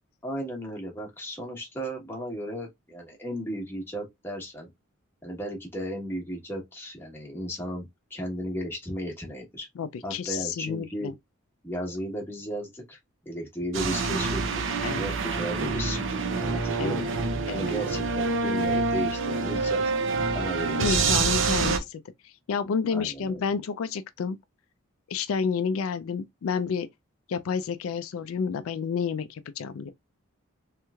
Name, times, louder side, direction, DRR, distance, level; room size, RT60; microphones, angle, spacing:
voice 1, 0.2-4.7 5.2-9.7 10.0-11.1 11.6-13.0 13.2-14.6 14.9-16.0 16.4-17.1 17.5-19.8 20.3-21.2 22.9-23.4, equal, 10° left, 1.1 m, -35 dB
voice 2, 9.8-11.1 14.8-15.1 16.8-17.0 17.5-17.7 20.8-24.4 25.1-26.9 27.3-29.9, left 6 dB, 75° left, 0.4 m, -30 dB
sound 1, 13.7-21.8, right 4 dB, 60° right, 0.5 m, -26 dB
3.2 x 3.0 x 2.2 m
head